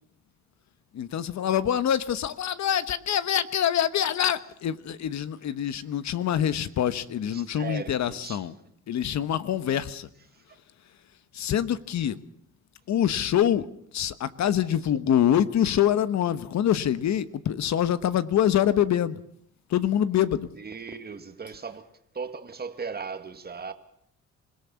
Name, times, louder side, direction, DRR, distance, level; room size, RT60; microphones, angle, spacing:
voice 1, 0.9-8.5 8.9-10.1 11.3-12.2 12.9-13.7 13.9-19.2 19.7-20.5, left 10 dB, 65° left, 13 dB, 1.2 m, -25 dB
voice 2, 7.3-8.4 10.5-10.6 20.2-21.9 22.1-23.7, right 5 dB, 30° right, 8 dB, 2.0 m, -37 dB
25.5 x 17.5 x 7.1 m, 0.69 s
cardioid pair, 90°, 30 cm